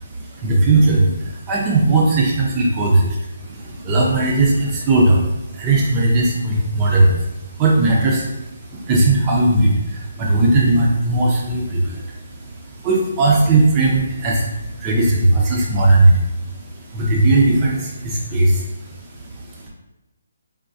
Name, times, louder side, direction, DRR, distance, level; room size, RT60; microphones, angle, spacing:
voice 1, 0.0-19.7, right 2 dB, 20° right, -3 dB, 0.5 m, -18 dB
3.5 x 2.5 x 2.6 m, 0.99 s
hypercardioid pair, 170°, 0 cm